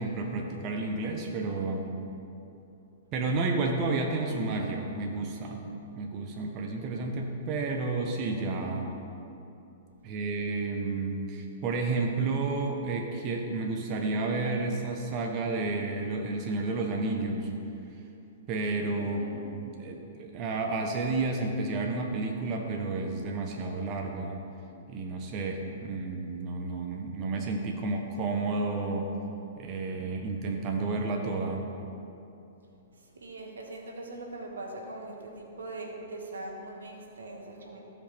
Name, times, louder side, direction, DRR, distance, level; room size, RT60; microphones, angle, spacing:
voice 1, 0.0-1.9 3.1-5.6 6.0-9.0 10.0-17.5 18.5-19.2 19.5-24.4 24.9-29.1 29.6-31.6, right 3 dB, 40° right, 2 dB, 1.0 m, -31 dB
voice 2, 19.0-19.4 32.9-37.8, right 2 dB, 85° right, 1 dB, 1.4 m, -41 dB
15.5 x 5.3 x 3.5 m, 2.8 s
hypercardioid pair, 125°, 0 cm